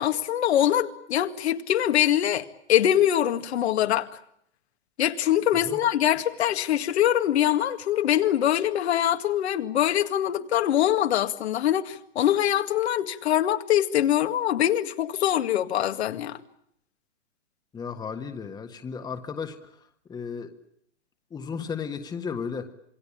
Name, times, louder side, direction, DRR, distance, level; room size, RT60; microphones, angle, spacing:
voice 1, 0.0-4.1 5.0-16.4, left 11 dB, 60° left, 7 dB, 2.0 m, -23 dB
voice 2, 17.7-19.8 20.1-20.5 21.3-22.7, left 6 dB, 10° left, 6 dB, 1.6 m, -34 dB
27.5 x 21.5 x 8.7 m, 0.70 s
hypercardioid pair, 135°, 36 cm